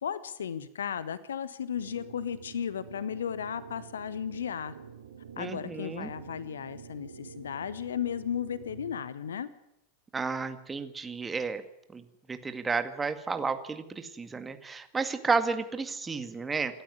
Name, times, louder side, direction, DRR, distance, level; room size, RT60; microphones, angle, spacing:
voice 1, 0.0-4.7 5.4-9.5, left 8 dB, 65° left, 16 dB, 1.3 m, -35 dB
sound 1, 1.7-9.0, right 6 dB, 70° right, 2.7 m, -48 dB
voice 2, 5.4-6.1 10.1-11.6 11.9-12.0 12.3-16.8, right 4 dB, 15° right, 9 dB, 2.0 m, -32 dB
27.5 x 13.0 x 9.8 m, 0.82 s
figure-of-eight pair, 90°, 0 cm